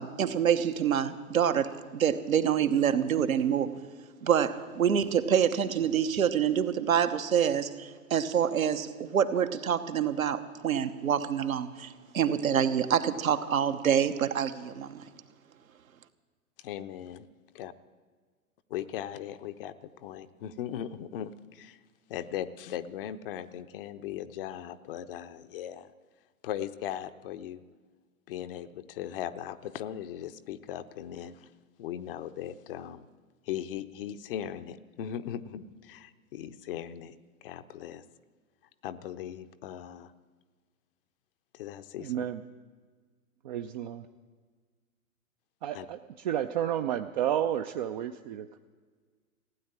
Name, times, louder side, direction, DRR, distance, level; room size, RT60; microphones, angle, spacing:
voice 1, 0.0-3.7 4.2-15.0, right 8 dB, 70° right, 8 dB, 1.2 m, -26 dB
voice 2, 16.6-17.3 17.5-17.7 18.7-21.8 22.1-25.9 26.4-27.6 28.3-31.5 31.8-33.1 33.5-38.0 38.8-40.1 41.5-42.2 45.7-45.9, left 10 dB, 40° left, 11 dB, 0.7 m, -38 dB
voice 3, 42.0-42.4 43.4-44.1 45.6-46.0 46.2-48.6, right 10 dB, 35° right, 7 dB, 0.5 m, -31 dB
16.0 x 9.3 x 8.9 m, 1.5 s
figure-of-eight pair, 110°, 43 cm